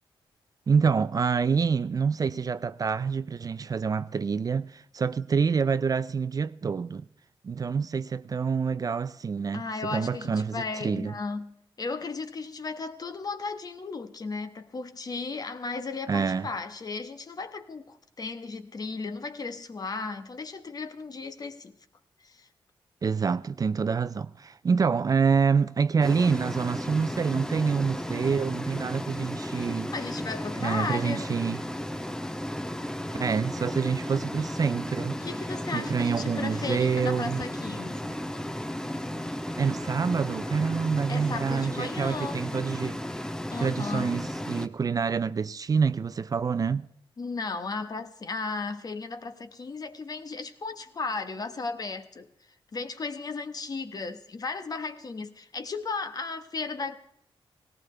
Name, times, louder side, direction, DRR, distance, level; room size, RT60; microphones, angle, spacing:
voice 1, 0.7-7.0 7.4-9.6 9.9-11.1 16.1-16.5 23.0-29.9 30.6-31.6 33.2-35.2 35.7-37.4 39.6-43.0 43.6-46.9, right 5 dB, 40° right, 0.5 m, -27 dB
voice 2, 9.5-21.7 22.2-22.5 29.6-29.7 29.9-31.3 35.2-38.2 41.1-42.4 43.5-44.2 47.2-52.3 52.7-57.0, left 4 dB, 45° left, 1.3 m, -35 dB
sound 1, 26.0-44.7, left 1 dB, 5° left, 0.8 m, -34 dB
18.5 x 18.0 x 3.3 m
wide cardioid pair, 110°, 9 cm